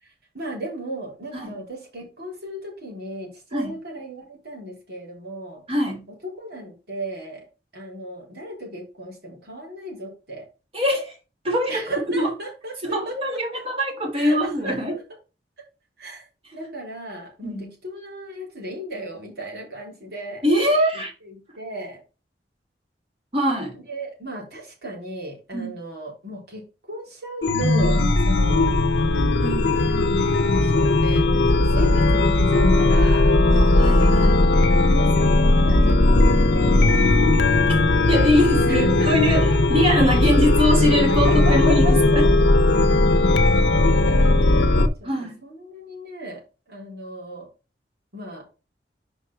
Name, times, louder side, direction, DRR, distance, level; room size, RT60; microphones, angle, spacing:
voice 1, 0.0-5.6 6.2-7.4 7.7-10.4 11.7-13.4 14.1-15.0 16.0-16.2 16.5-20.4 20.9-22.0 23.9-26.6 26.9-28.7 29.9-33.3 34.9-37.6 38.8-40.2 41.1-42.0 43.9-45.1 45.4-46.4 46.7-47.5 48.1-48.4, right 1 dB, 65° right, 4.1 m, -36 dB
voice 2, 5.7-6.0 10.7-11.1 11.4-11.8 12.2-12.3 12.8-14.9 17.4-17.7 20.4-21.1 23.3-23.8 25.5-25.7 29.4-29.8 33.4-34.5 38.1-42.3 45.0-45.4, equal, 35° right, 3.2 m, -23 dB
Chime, 27.4-44.9, left 2 dB, 80° left, 0.8 m, -17 dB
5.3 x 4.9 x 5.8 m
head